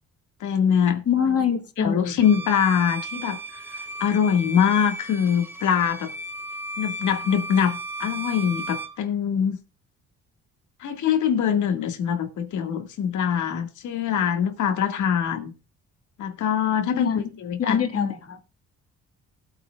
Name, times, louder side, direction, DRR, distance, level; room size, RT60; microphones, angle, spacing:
voice 1, 0.4-1.0 1.8-6.1 6.8-9.6 10.8-15.5 16.2-17.8, left 8 dB, 75° left, 2.1 m, -23 dB
voice 2, 1.1-2.1 16.9-17.2 17.6-18.4, left 7 dB, 50° left, 2.1 m, -24 dB
Bowed string instrument, 2.2-9.0, right 2 dB, 5° right, 1.7 m, -35 dB
17.5 x 8.7 x 2.4 m
cardioid pair, 90°, 30 cm